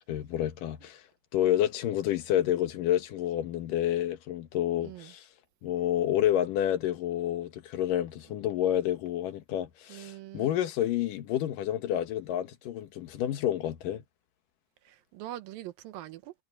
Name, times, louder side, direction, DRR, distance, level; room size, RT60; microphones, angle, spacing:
voice 1, 0.1-1.0 1.3-5.3 5.6-14.0, left 11 dB, 70° left, 2.9 m, -29 dB
voice 2, 4.8-5.1 9.9-10.5 14.9-16.3, right 14 dB, 90° right, 2.7 m, -43 dB
omnidirectional pair, 4.1 m